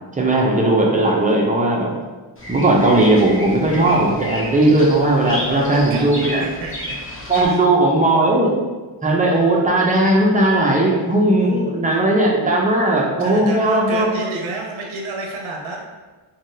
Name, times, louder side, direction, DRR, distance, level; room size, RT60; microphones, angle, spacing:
voice 1, 0.1-1.9 2.5-6.4 7.3-8.5 9.0-14.1, right 1 dB, 15° right, -2 dB, 0.4 m, -17 dB
Bird vocalization bird call bird song, 2.4-7.5, left 1 dB, 25° left, 0.7 m, -32 dB
voice 2, 5.3-6.1 6.4-7.0 7.4-7.6 11.4-11.7 13.2-16.0, right 3 dB, 75° right, 0 dB, 0.6 m, -31 dB
3.3 x 2.2 x 2.6 m, 1.3 s
wide cardioid pair, 120°, 49 cm